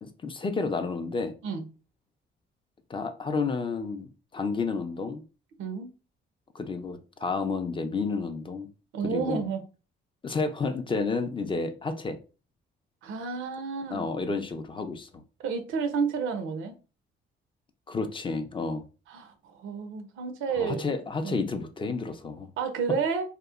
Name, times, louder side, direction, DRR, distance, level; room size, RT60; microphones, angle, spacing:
voice 1, 0.0-1.3 2.9-5.2 6.5-8.7 9.0-9.4 10.2-12.2 13.9-15.2 17.9-18.8 20.6-22.5, left 4 dB, 25° left, 0.4 m, -31 dB
voice 2, 5.6-5.9 8.9-9.6 13.0-14.1 15.4-16.8 19.1-20.8 21.2-21.4 22.6-23.3, right 5 dB, 80° right, 0.5 m, -30 dB
2.8 x 2.1 x 2.4 m
cardioid pair, 90°, 20 cm